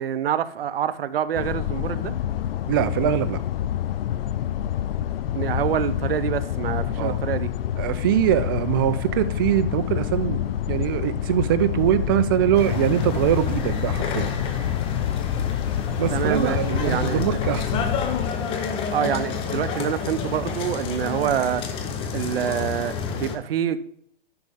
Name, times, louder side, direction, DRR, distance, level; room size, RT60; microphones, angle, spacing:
voice 1, 0.0-2.1 5.3-7.5 16.1-17.4 18.9-21.6 22.1-23.8, right 9 dB, 75° right, 0.8 m, -26 dB
sound 1, 1.3-18.3, left 11 dB, 70° left, 0.5 m, -27 dB
voice 2, 2.7-3.4 7.0-7.2 7.8-14.3 16.0-18.0, right 11 dB, 25° right, 0.3 m, -23 dB
sound 2, 12.5-23.4, left 6 dB, 20° left, 0.7 m, -29 dB
10.5 x 4.0 x 3.6 m
hypercardioid pair, 150°, 30 cm